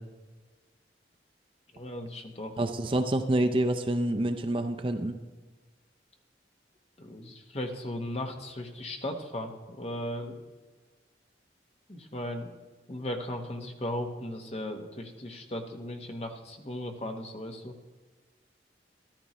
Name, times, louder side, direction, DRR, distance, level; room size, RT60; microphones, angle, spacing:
voice 1, 1.7-2.6 7.0-10.4 11.9-12.5 12.9-17.7, left 1 dB, 35° left, 4 dB, 1.1 m, -37 dB
voice 2, 2.6-5.2, right 1 dB, 30° right, 6 dB, 0.5 m, -27 dB
13.5 x 13.0 x 3.1 m, 1.3 s
head